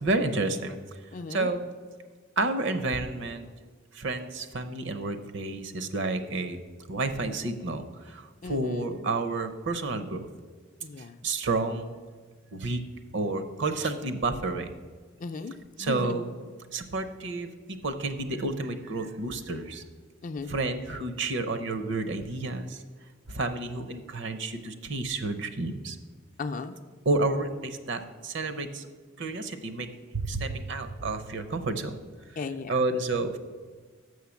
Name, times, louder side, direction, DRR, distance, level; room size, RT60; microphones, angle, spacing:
voice 1, 0.0-0.8 1.3-1.7 2.4-3.5 3.9-6.6 6.9-10.3 11.2-12.0 12.5-12.8 13.1-14.8 15.8-16.3 16.7-19.8 20.5-22.8 23.3-26.0 27.0-28.9 29.2-32.0 32.7-33.4, right 2 dB, 60° right, 10 dB, 0.7 m, -30 dB
voice 2, 1.1-1.5 8.4-9.1 10.8-11.2 15.2-15.5 15.8-16.2 20.2-20.5 26.4-26.8 32.4-32.7, left 4 dB, 40° left, 9 dB, 0.4 m, -36 dB
6.5 x 6.4 x 7.0 m, 1.4 s
head